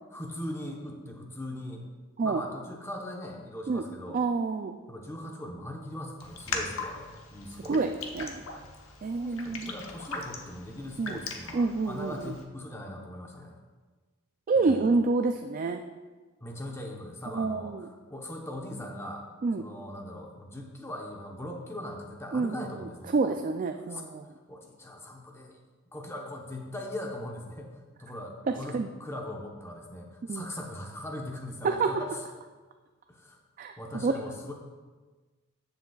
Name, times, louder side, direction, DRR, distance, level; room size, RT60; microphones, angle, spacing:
voice 1, 0.1-1.9 2.2-4.2 4.9-7.9 9.2-13.6 14.6-14.9 16.4-19.3 19.6-23.4 23.9-24.0 24.5-25.6 25.9-32.2 33.1-34.5, left 1 dB, 15° left, 1 dB, 0.9 m, -40 dB
voice 2, 4.1-4.8 7.7-7.9 8.1-8.4 9.0-9.7 11.0-11.2 11.5-12.3 14.5-15.8 17.3-17.9 19.4-19.6 22.3-24.2 28.7-28.9 30.3-30.4 31.6-31.9 33.6-34.1, right 4 dB, 40° right, 6 dB, 0.3 m, -28 dB
Raindrop, 6.2-12.4, left 3 dB, 70° left, 1.0 m, -40 dB
14.0 x 6.9 x 2.4 m, 1.3 s
head